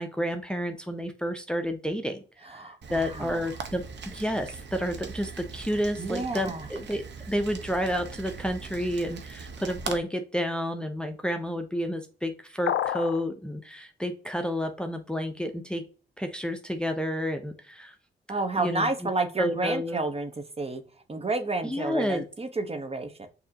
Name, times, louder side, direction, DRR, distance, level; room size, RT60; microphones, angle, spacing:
voice 1, 0.0-15.8 16.2-17.9 18.3-19.1 19.4-20.0 21.6-22.2, equal, 5° left, 6 dB, 0.7 m, -30 dB
voice 2, 2.5-3.5 6.0-6.7 18.3-20.8 21.1-23.3, right 3 dB, 30° right, 8 dB, 0.9 m, -30 dB
Rain, 2.8-10.0, right 5 dB, 60° right, 0.8 m, -40 dB
sound 1, 12.7-13.2, left 11 dB, 70° left, 0.4 m, -28 dB
6.4 x 2.9 x 2.8 m, 0.37 s
supercardioid pair, 50°, 20 cm